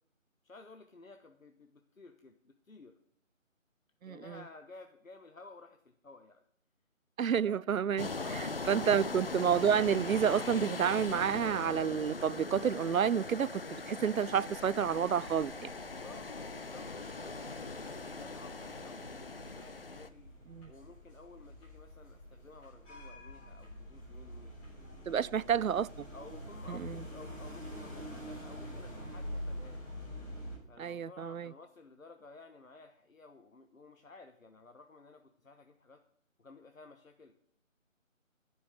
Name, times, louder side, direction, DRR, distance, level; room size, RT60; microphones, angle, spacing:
voice 1, 0.4-3.0 4.0-6.4 7.4-7.6 8.1-9.1 16.0-20.3 20.6-24.5 25.1-25.8 26.1-29.9 30.7-36.0 36.4-37.3, left 3 dB, 80° left, 1.3 m, -54 dB
voice 2, 4.0-4.4 7.2-8.1 8.7-15.7 20.5-20.7 25.1-26.1 26.7-27.0 30.8-31.5, right 8 dB, 85° right, 0.5 m, -30 dB
sound 1, 8.0-20.1, left 3 dB, 45° left, 0.8 m, -40 dB
sound 2, 15.2-30.6, equal, 10° left, 4.0 m, -46 dB
11.5 x 6.2 x 9.0 m
figure-of-eight pair, 160°, 40 cm